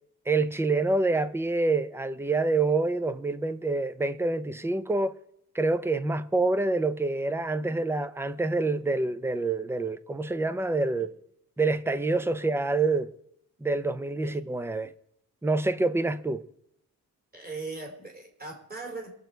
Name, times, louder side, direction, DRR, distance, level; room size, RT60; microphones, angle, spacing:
voice 1, 0.3-5.1 5.5-11.1 11.6-13.1 13.6-14.9 15.4-16.4, right 3 dB, 10° right, 0.6 m, -27 dB
voice 2, 17.3-19.2, right 3 dB, 30° right, 3.7 m, -39 dB
23.0 x 8.0 x 4.5 m
wide cardioid pair, 145°, 33 cm